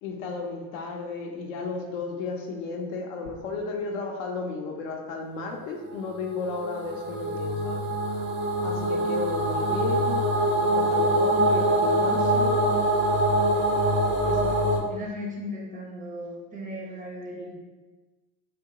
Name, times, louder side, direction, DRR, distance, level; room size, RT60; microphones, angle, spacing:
voice 1, 0.0-7.9 8.6-10.3 10.5-12.6 14.3-15.0, left 4 dB, 65° left, 2 dB, 0.6 m, -34 dB
sound 1, 6.3-14.8, right 1 dB, 80° right, 0.6 m, -24 dB
voice 2, 14.9-17.6, left 1 dB, 20° right, -3 dB, 0.5 m, -37 dB
2.8 x 2.2 x 2.7 m, 1.2 s
figure-of-eight pair, 70°, 43 cm